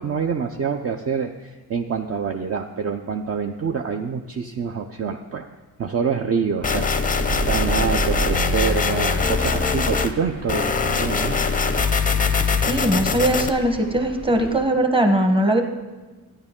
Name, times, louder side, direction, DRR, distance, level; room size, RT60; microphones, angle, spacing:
voice 1, 0.0-5.4 5.8-11.3, right 6 dB, 40° right, 4 dB, 0.5 m, -26 dB
sound 1, 6.6-10.1 10.5-13.5, left 5 dB, 20° left, 0.5 m, -22 dB
sound 2, 7.2-14.6, right 4 dB, 75° right, 2.6 m, -32 dB
voice 2, 12.7-15.6, right 1 dB, 15° right, 5 dB, 1.0 m, -20 dB
12.0 x 9.6 x 3.7 m, 1.3 s
cardioid pair, 105°, 38 cm